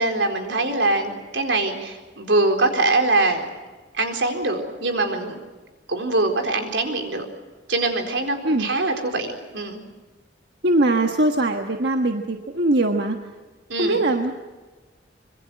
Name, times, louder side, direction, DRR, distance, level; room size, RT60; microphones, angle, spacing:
voice 1, 0.0-3.5 3.9-5.4 5.9-7.3 7.7-9.8 13.7-14.0, right 2 dB, 90° right, 4 dB, 4.2 m, -23 dB
voice 2, 10.6-13.2 13.8-14.3, right 2 dB, 65° right, 4 dB, 1.4 m, -21 dB
25.5 x 22.0 x 7.7 m, 1.3 s
head